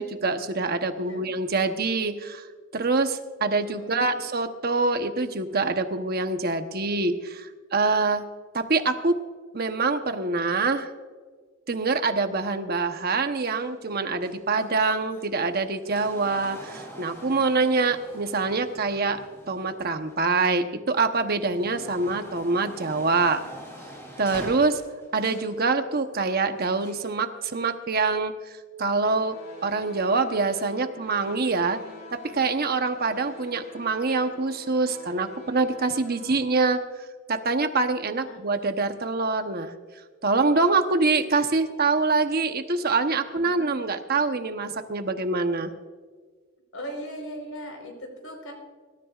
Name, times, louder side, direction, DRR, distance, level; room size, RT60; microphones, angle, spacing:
voice 1, 0.0-2.5 2.7-8.2 8.5-9.2 9.5-10.9 11.7-19.2 19.5-23.4 24.2-24.8 25.1-29.3 29.6-31.8 32.1-36.8 37.3-39.7 40.2-45.7, right 3 dB, 45° right, 7 dB, 1.0 m, -25 dB
voice 2, 0.9-1.3 3.6-4.2 38.2-38.4 43.4-43.8 46.7-48.5, equal, 75° left, 2 dB, 4.4 m, -39 dB
sound 1, 13.3-20.5 21.0-25.6 26.6-27.1 28.0-28.1, equal, 15° left, 3.3 m, -45 dB
sound 2, 29.1-36.4, left 2 dB, 50° left, 2.6 m, -46 dB
24.5 x 13.5 x 2.5 m, 1.5 s
head